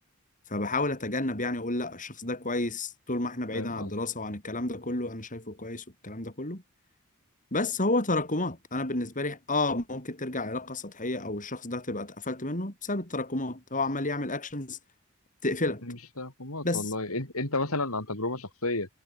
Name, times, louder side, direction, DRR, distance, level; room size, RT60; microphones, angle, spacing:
voice 1, 0.5-6.6 7.5-14.8 15.4-15.8 16.6-16.9, left 2 dB, 35° left, 7.9 m, -31 dB
voice 2, 3.5-3.9 15.9-18.9, left 2 dB, 80° left, 6.7 m, -32 dB
head